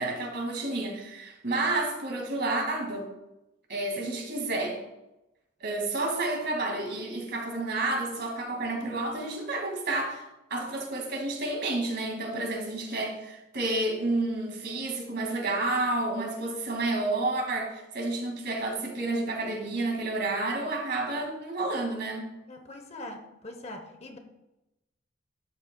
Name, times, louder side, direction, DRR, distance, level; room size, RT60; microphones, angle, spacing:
voice 1, 0.0-3.1 3.7-4.8 5.6-22.3, right 2 dB, 55° right, 2 dB, 2.0 m, -30 dB
voice 2, 22.5-24.2, left 1 dB, 30° left, 6 dB, 0.8 m, -42 dB
12.5 x 9.0 x 2.2 m, 0.95 s
head